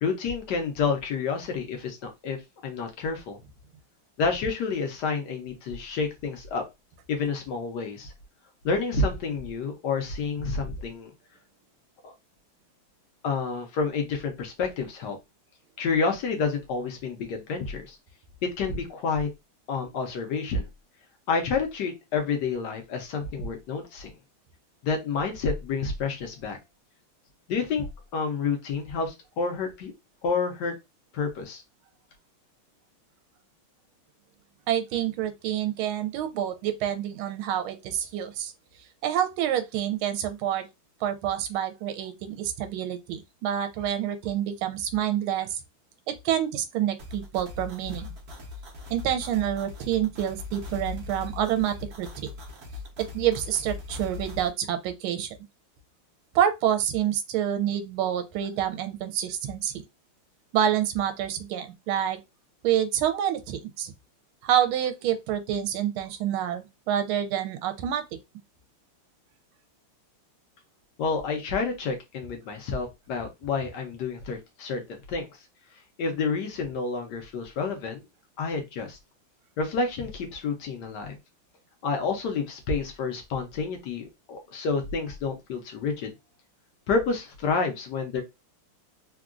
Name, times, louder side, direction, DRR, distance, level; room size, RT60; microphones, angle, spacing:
voice 1, 0.0-2.4 2.6-3.4 4.2-6.6 7.1-8.1 8.6-11.1 12.0-12.1 13.2-15.2 15.8-18.0 18.6-19.3 19.7-20.7 21.3-24.1 24.8-26.6 27.5-27.8 28.1-29.9 30.2-30.8 31.1-31.6 71.0-75.3 76.0-78.0 78.4-79.0 79.6-81.2 81.8-86.1 86.9-88.2, left 4 dB, 65° left, 1.1 m, -29 dB
voice 2, 34.7-38.5 39.0-40.6 41.0-45.6 46.1-48.1 48.9-52.3 53.0-55.4 56.3-59.7 60.5-62.2 62.6-63.9 64.4-68.2, right 10 dB, 80° right, 1.4 m, -27 dB
sound 1, 47.0-54.5, left 4 dB, 50° right, 0.8 m, -40 dB
3.6 x 2.2 x 2.4 m
omnidirectional pair, 2.3 m